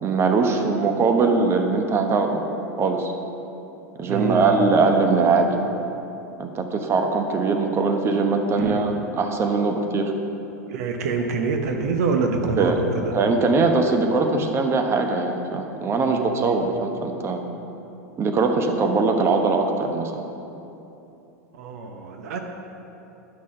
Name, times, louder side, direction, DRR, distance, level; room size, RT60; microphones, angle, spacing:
voice 1, 0.0-2.4 2.8-3.1 4.0-5.6 6.4-10.1 12.6-12.8 13.1-17.4 18.2-20.1, right 4 dB, 30° right, 4 dB, 1.0 m, -21 dB
voice 2, 4.0-4.6 4.9-5.2 8.6-8.8 9.6-9.7 10.7-13.1 16.0-16.6 21.5-22.4, right 4 dB, 65° right, 4 dB, 0.9 m, -26 dB
11.5 x 6.1 x 5.7 m, 3.0 s
hypercardioid pair, 90°, 9 cm